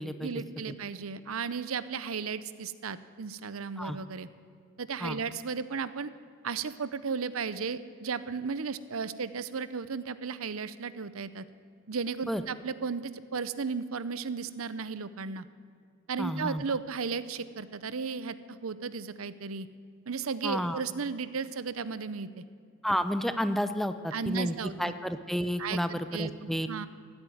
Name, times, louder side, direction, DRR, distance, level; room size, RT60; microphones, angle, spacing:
voice 1, 0.2-4.3 4.8-6.1 6.4-11.5 11.9-15.5 16.1-19.7 20.1-22.4 24.1-24.9 25.6-26.3 26.7-26.9, right 5 dB, 90° right, 15 dB, 0.7 m, -35 dB
voice 2, 16.2-16.6 20.4-20.8 22.8-26.7, equal, ahead, 10 dB, 0.6 m, -31 dB
16.0 x 8.8 x 9.4 m, 2.3 s
head